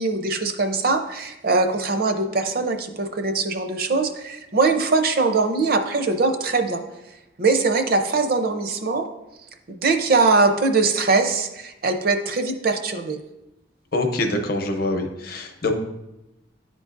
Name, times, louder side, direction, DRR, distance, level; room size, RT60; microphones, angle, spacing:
voice 1, 0.0-6.8 7.4-9.1 9.7-13.2, right 3 dB, 50° right, 7 dB, 0.6 m, -21 dB
voice 2, 13.9-15.7, left 2 dB, 50° left, 5 dB, 0.7 m, -24 dB
10.5 x 3.8 x 2.5 m, 0.94 s
head